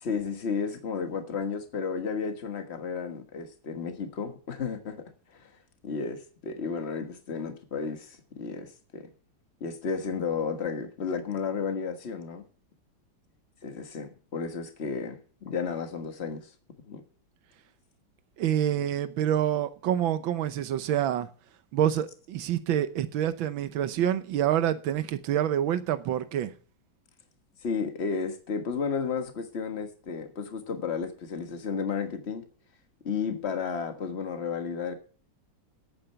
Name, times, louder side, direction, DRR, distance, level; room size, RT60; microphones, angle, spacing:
voice 1, 0.0-5.5 5.8-9.1 9.6-12.4 13.6-16.5 16.8-17.0 27.6-32.4 33.0-34.9, left 5 dB, 35° left, 1.6 m, -33 dB
voice 2, 18.4-21.3 21.7-26.5, right 10 dB, 85° right, 1.6 m, -27 dB
10.0 x 8.8 x 5.6 m
omnidirectional pair, 2.1 m